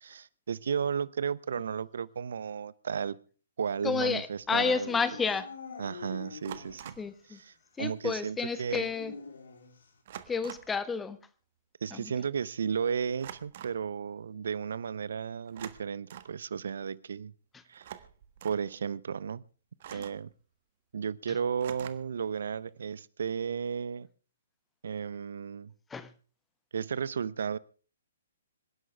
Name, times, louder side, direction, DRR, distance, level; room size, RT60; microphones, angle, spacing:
voice 1, 0.0-3.2 3.6-5.0 5.8-7.0 7.3-8.9 11.8-17.3 17.7-17.9 18.4-19.4 19.9-20.3 20.9-24.1 24.8-25.7 26.7-27.6, right 7 dB, 65° right, 0.7 m, -34 dB
voice 2, 3.8-5.5 7.0-7.4 7.8-9.1 10.3-11.2 11.9-12.1 19.9-20.0 25.9-26.1, left 5 dB, 10° left, 1.3 m, -31 dB
sound 1, 4.3-4.5 6.4-7.1 8.5-8.6 8.8-9.1 10.1-10.8 13.2-13.8 15.5-16.4 17.7-18.7 19.8-20.3 21.6-22.2, right 11 dB, 45° right, 1.5 m, -46 dB
Dog / Siren, 4.9-7.0 7.4-7.5 8.5-10.0, left 5 dB, 70° left, 3.3 m, -45 dB
26.5 x 11.0 x 3.4 m
figure-of-eight pair, 125°, 0 cm